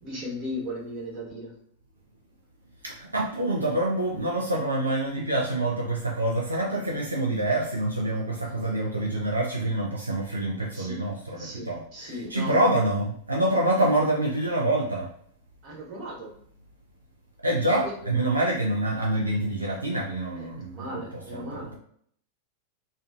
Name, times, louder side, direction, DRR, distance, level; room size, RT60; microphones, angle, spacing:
voice 1, 0.0-1.5 10.7-11.0 11.3-12.7 15.6-16.3 17.7-17.9 20.4-21.8, equal, 40° right, -5 dB, 1.1 m, -37 dB
voice 2, 2.8-15.1 17.4-21.0 21.3-21.8, right 1 dB, 80° right, -2 dB, 0.3 m, -26 dB
2.4 x 2.2 x 2.3 m, 0.64 s
figure-of-eight pair, 90°, 0 cm